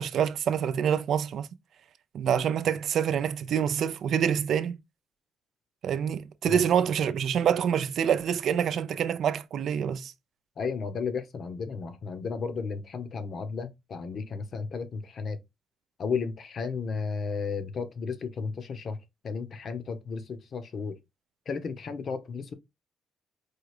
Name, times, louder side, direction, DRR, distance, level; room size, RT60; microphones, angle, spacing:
voice 1, 0.0-1.5 2.1-4.8 5.8-10.1, right 8 dB, 70° right, 0.5 m, -26 dB
voice 2, 10.6-15.4 16.0-19.0 19.2-21.0 21.5-22.5, left 5 dB, 55° left, 1.0 m, -33 dB
4.7 x 2.3 x 4.9 m
cardioid pair, 90°, 0 cm